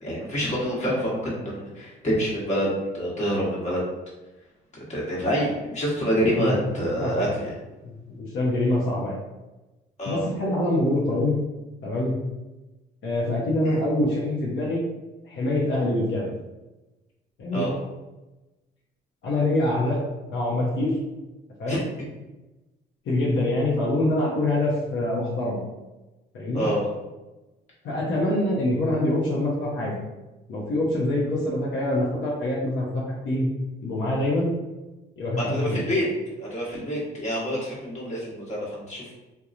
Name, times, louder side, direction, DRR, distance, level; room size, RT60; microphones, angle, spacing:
voice 1, 0.0-3.8 4.9-7.5 10.0-10.2 13.7-13.8 17.5-17.7 21.7-21.8 26.5-26.8 35.4-36.1 36.4-39.2, equal, 35° left, -5 dB, 1.1 m, -27 dB
voice 2, 8.2-9.2 10.1-11.3 11.8-12.1 13.0-14.8 15.3-16.3 17.4-17.7 19.2-20.0 20.3-21.0 21.6-21.8 23.0-25.6 26.3-26.7 27.8-30.0 30.5-33.5 33.8-34.5 35.2-35.8, left 1 dB, 70° left, -5 dB, 0.8 m, -25 dB
3.0 x 2.2 x 2.4 m, 1.1 s
cardioid pair, 90°, 20 cm